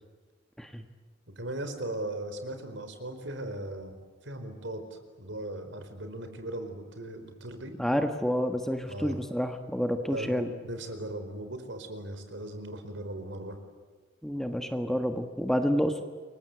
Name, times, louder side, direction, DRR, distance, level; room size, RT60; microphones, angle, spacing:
voice 1, 1.4-3.9 4.2-7.7 8.9-9.2 10.1-13.6, right 1 dB, 70° right, 7 dB, 4.7 m, -38 dB
voice 2, 7.8-10.5 14.2-16.0, equal, ahead, 6 dB, 1.5 m, -29 dB
29.5 x 23.5 x 8.1 m, 1.4 s
head